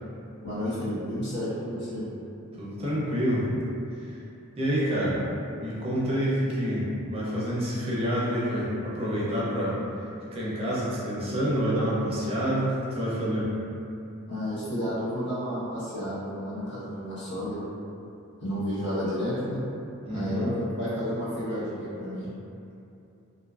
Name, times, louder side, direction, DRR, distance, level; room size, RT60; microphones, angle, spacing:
voice 1, 0.4-2.0 14.3-17.6 18.4-19.6 20.1-22.3, equal, 55° left, -11 dB, 1.0 m, -31 dB
voice 2, 2.6-3.4 4.0-4.2 4.6-5.2 5.6-9.8 10.3-13.5 20.0-20.5, equal, 25° right, -8 dB, 0.4 m, -28 dB
2.5 x 2.3 x 2.3 m, 2.7 s
head